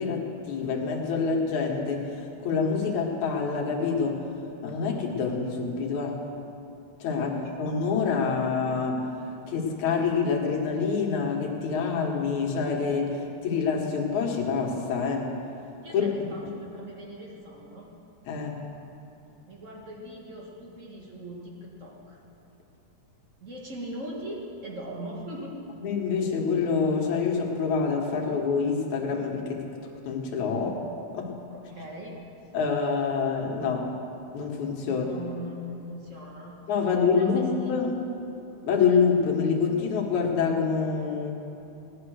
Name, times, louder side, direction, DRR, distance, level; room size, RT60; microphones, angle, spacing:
voice 1, 0.0-4.2 4.6-6.2 7.0-7.3 7.6-9.0 9.5-15.3 15.9-16.1 18.3-18.6 25.8-29.6 30.0-30.7 31.1-31.4 32.5-33.9 34.3-35.1 36.7-37.4 37.7-38.0 38.6-41.3, left 5 dB, 65° left, 0 dB, 2.8 m, -26 dB
voice 2, 7.1-7.6 15.8-17.9 19.5-22.2 23.4-25.6 30.5-30.8 31.5-32.2 34.8-36.6 37.1-37.7, right 1 dB, 55° right, -2 dB, 0.8 m, -40 dB
17.5 x 10.5 x 6.5 m, 2.7 s
omnidirectional pair, 3.9 m